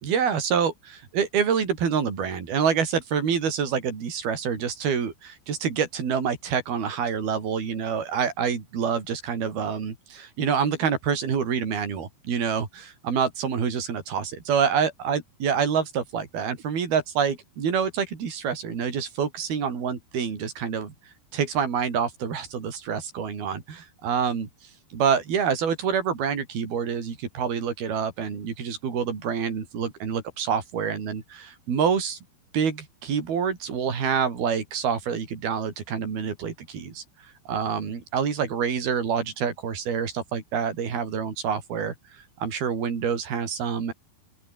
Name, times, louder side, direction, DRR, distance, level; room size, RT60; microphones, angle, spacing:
voice 1, 0.0-20.9 21.3-24.5 24.9-32.2 32.5-37.0 37.5-43.9, right 7 dB, 60° right, 6.3 m, -27 dB
open air
omnidirectional pair, 4.9 m